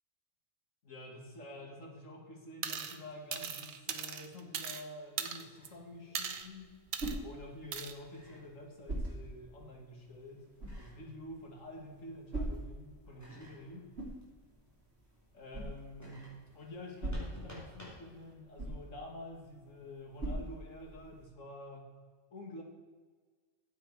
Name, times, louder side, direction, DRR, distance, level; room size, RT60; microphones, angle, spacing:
voice 1, 0.8-6.8 7.2-10.4 10.8-13.9 15.3-21.9 22.3-22.6, left 1 dB, 65° left, 0 dB, 2.4 m, -48 dB
sound 1, 2.6-3.0 3.3-4.8 5.2-5.7 6.1-6.5 6.9-7.2 7.7-7.9, right 7 dB, 75° right, 1.2 m, -38 dB
sound 2, 5.5-12.3 12.6-18.3, equal, 10° left, 3.1 m, -57 dB
sound 3, 6.3-21.2, right 1 dB, 50° right, 3.9 m, -44 dB
12.5 x 7.9 x 4.8 m, 1.5 s
omnidirectional pair, 1.4 m